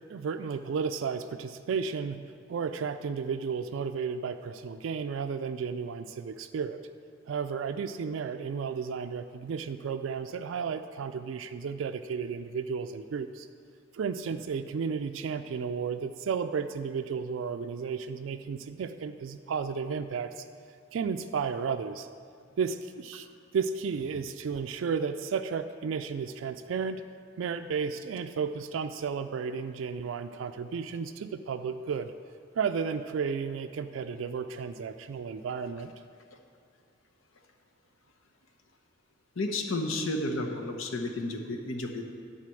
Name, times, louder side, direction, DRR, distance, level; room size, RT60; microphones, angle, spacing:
voice 1, 0.1-2.2 2.5-6.8 7.3-13.5 13.9-20.5 20.9-22.1 22.6-23.3 23.5-27.0 27.4-32.1 32.5-35.9, right 6 dB, 80° right, 8 dB, 0.3 m, -33 dB
voice 2, 39.4-42.0, left 2 dB, 90° left, 4 dB, 0.9 m, -32 dB
10.5 x 4.2 x 7.6 m, 2.3 s
head